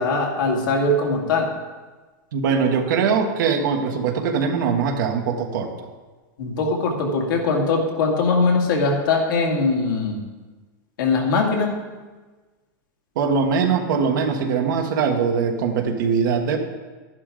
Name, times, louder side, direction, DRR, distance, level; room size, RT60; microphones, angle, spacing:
voice 1, 0.0-1.5 6.4-10.2 11.0-11.7, left 3 dB, 80° left, 0 dB, 2.4 m, -21 dB
voice 2, 2.3-5.7 13.1-16.6, right 6 dB, 70° right, 3 dB, 1.4 m, -21 dB
11.5 x 11.0 x 3.8 m, 1.3 s
supercardioid pair, 150°, 11 cm